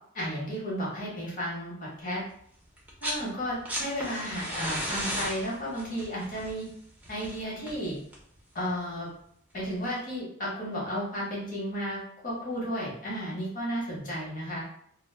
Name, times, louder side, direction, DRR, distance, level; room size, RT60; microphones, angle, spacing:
voice 1, 0.1-2.2 3.0-6.6 7.1-8.0 8.5-9.1 9.5-14.6, equal, 40° left, -5 dB, 1.0 m, -33 dB
sound 1, 2.8-3.2 3.5-8.4 9.6-9.7, equal, 5° right, 0.6 m, -35 dB
2.1 x 2.0 x 3.1 m, 0.66 s
head